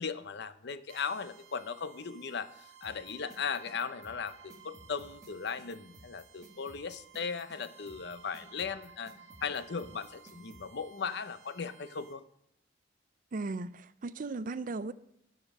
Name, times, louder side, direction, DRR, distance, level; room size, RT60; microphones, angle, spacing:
voice 1, 0.0-9.1 9.4-12.2, left 6 dB, 60° left, 0.6 m, -37 dB
sound 1, 0.9-12.1, right 8 dB, 70° right, 2.1 m, -57 dB
sound 2, 2.8-10.6, right 1 dB, 20° right, 1.8 m, -55 dB
voice 2, 13.3-14.9, right 3 dB, 45° right, 0.4 m, -36 dB
13.0 x 5.1 x 6.4 m
head